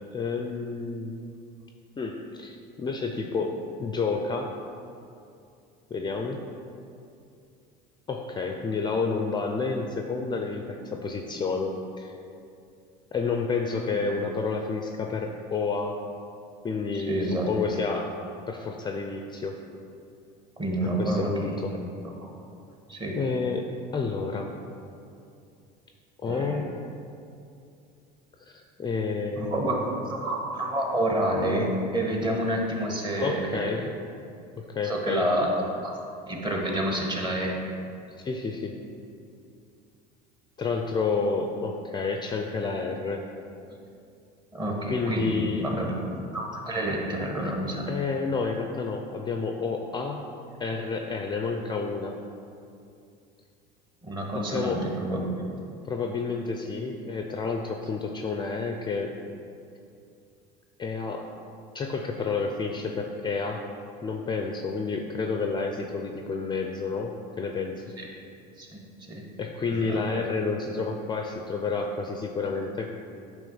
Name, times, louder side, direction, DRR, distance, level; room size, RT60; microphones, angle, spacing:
voice 1, 0.1-1.2 2.0-4.6 5.9-6.5 8.1-12.2 13.1-16.0 16.6-18.2 18.5-19.6 21.0-21.8 23.2-24.5 26.2-26.8 28.5-29.9 33.2-33.9 34.6-35.3 38.2-38.8 40.6-43.2 44.9-45.7 47.2-47.3 47.9-50.2 50.6-52.2 54.5-54.9 55.8-59.1 60.8-61.3 61.7-63.7 64.0-67.8 69.4-73.0, left 4 dB, 20° left, 3 dB, 0.4 m, -30 dB
voice 2, 16.9-17.6 20.6-21.6 22.2-22.3 22.9-23.2 26.2-26.6 29.4-33.8 34.8-36.0 36.3-37.6 44.5-46.0 46.3-47.9 54.0-55.3 68.0-68.1 68.6-68.7 69.1-69.2 69.7-70.1, right 1 dB, 20° right, 0 dB, 1.3 m, -29 dB
8.8 x 3.0 x 5.5 m, 2.5 s
supercardioid pair, 110°, 21 cm